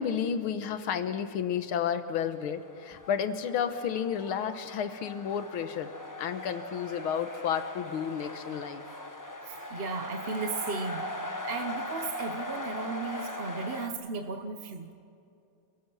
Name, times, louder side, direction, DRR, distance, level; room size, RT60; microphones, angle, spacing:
voice 1, 0.0-8.8, left 8 dB, 75° left, 10 dB, 1.9 m, -31 dB
Crowd Cheering - Soft Cheering and Chatter, 2.4-13.9, left 1 dB, 15° left, 0.6 m, -40 dB
voice 2, 9.4-11.1 11.4-14.9, right 4 dB, 45° right, 6 dB, 0.8 m, -35 dB
28.5 x 17.0 x 6.2 m, 2.5 s
omnidirectional pair, 2.3 m